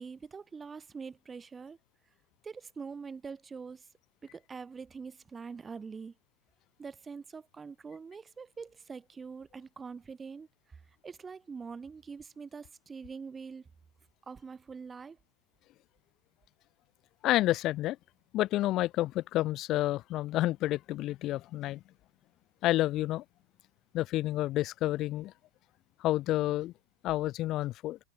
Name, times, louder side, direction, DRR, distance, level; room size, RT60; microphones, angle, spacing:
voice 1, 0.0-1.8 2.4-3.9 4.2-6.1 6.8-13.7 14.3-15.2, right 5 dB, 15° right, 3.7 m, -44 dB
voice 2, 17.2-18.0 18.3-21.8 22.6-23.2 23.9-25.3 26.0-26.7 27.0-28.0, left 15 dB, 35° left, 0.9 m, -29 dB
figure-of-eight pair, 90°, 0 cm